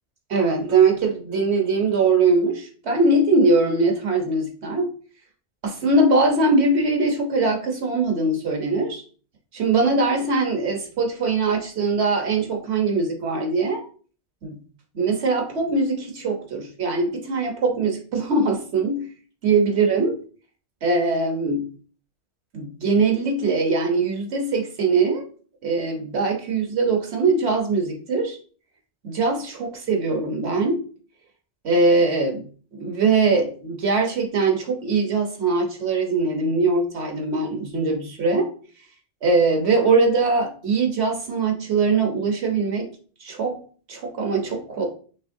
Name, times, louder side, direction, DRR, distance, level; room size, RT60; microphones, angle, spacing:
voice 1, 0.3-4.9 5.6-9.0 9.5-13.8 14.4-14.6 14.9-19.1 19.4-20.2 20.8-21.7 22.5-25.2 25.6-28.4 29.0-30.8 31.6-32.5 32.7-38.5 39.2-42.9 43.2-43.6 43.9-44.8, right 3 dB, 70° right, 2 dB, 1.4 m, -21 dB
6.1 x 2.9 x 2.7 m, 0.41 s
omnidirectional pair, 1.1 m